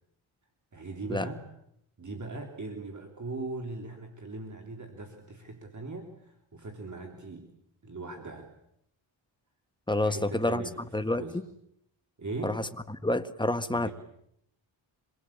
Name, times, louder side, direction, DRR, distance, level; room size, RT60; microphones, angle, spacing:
voice 1, 0.7-1.4 2.0-7.5 7.8-8.5 10.0-11.4 12.2-12.6 13.7-13.9, right 2 dB, 40° right, 3 dB, 3.4 m, -40 dB
voice 2, 9.9-10.6 10.9-11.2 12.4-12.7 13.0-13.9, left 2 dB, 10° left, 9 dB, 1.7 m, -28 dB
26.0 x 22.0 x 8.6 m, 0.75 s
cardioid pair, 80°, 47 cm